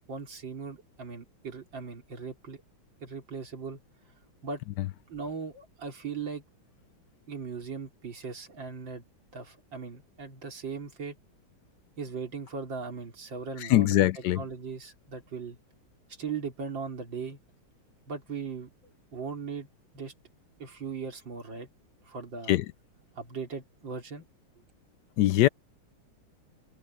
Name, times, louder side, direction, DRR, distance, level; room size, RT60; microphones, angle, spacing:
voice 1, 0.1-2.6 3.0-3.8 4.4-4.6 5.1-6.4 7.3-9.0 9.3-11.2 12.0-15.6 16.1-17.4 18.1-18.7 19.1-19.7 19.9-20.1 20.6-21.7 22.1-22.6 23.2-24.3, right 5 dB, 65° right, 4.1 m, -38 dB
voice 2, 13.7-14.4 22.5-22.6 25.2-25.5, left 14 dB, 75° left, 1.0 m, -22 dB
omnidirectional pair, 2.2 m